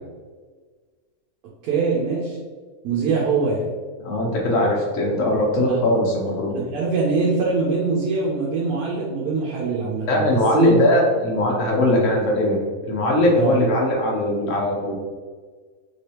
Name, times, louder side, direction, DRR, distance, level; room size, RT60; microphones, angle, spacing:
voice 1, 1.6-2.4 2.8-3.7 5.6-5.8 6.6-10.7 13.4-13.6, right 4 dB, 90° right, -4 dB, 1.1 m, -23 dB
voice 2, 4.0-6.6 10.1-14.9, left 1 dB, 65° left, -2 dB, 1.2 m, -20 dB
3.2 x 3.1 x 2.8 m, 1.5 s
omnidirectional pair, 1.5 m